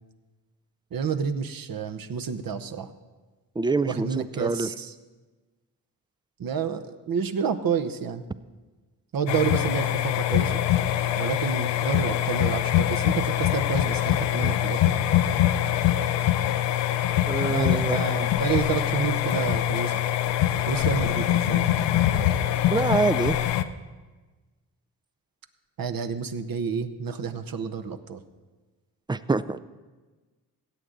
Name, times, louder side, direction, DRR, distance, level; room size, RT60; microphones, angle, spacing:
voice 1, 0.9-2.9 3.9-4.9 6.4-8.2 9.1-10.6 11.2-14.9 17.5-20.0 20.7-21.7 25.8-28.2, right 6 dB, 55° right, 10 dB, 0.9 m, -29 dB
voice 2, 3.6-4.7 17.3-18.0 22.7-23.4 29.1-29.6, right 3 dB, 10° right, 15 dB, 0.3 m, -25 dB
sound 1, 9.3-23.6, left 12 dB, 85° left, 0.6 m, -24 dB
16.5 x 8.0 x 3.9 m, 1.3 s
supercardioid pair, 50°, 42 cm